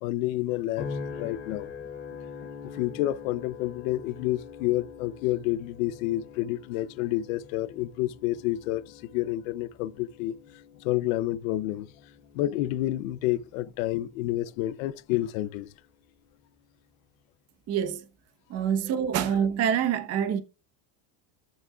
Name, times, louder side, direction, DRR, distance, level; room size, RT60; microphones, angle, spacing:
voice 1, 0.0-1.7 2.7-10.3 10.8-11.9 12.3-15.7, left 15 dB, 60° left, 0.6 m, -29 dB
sound 1, 0.8-15.2 15.8-16.2, left 5 dB, 30° left, 3.5 m, -44 dB
voice 2, 17.7-18.0 18.5-20.4, right 8 dB, 30° right, 1.0 m, -26 dB
14.0 x 6.2 x 2.3 m
supercardioid pair, 165°, 47 cm